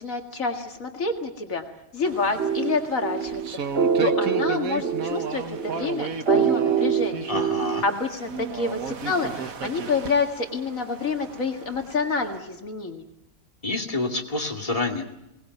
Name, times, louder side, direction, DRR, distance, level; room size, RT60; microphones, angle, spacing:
voice 1, 0.0-1.6 1.9-3.6 4.0-7.3 7.8-13.0, left 4 dB, 70° left, 4 dB, 2.4 m, -28 dB
sound 1, 2.0-12.4, right 5 dB, 80° right, 1.7 m, -35 dB
sound 2, 2.4-7.9, right 7 dB, 50° right, 1.3 m, -25 dB
voice 2, 7.3-7.8 13.6-15.0, left 2 dB, 25° left, 2 dB, 2.6 m, -28 dB
23.0 x 19.0 x 9.3 m, 0.88 s
omnidirectional pair, 1.4 m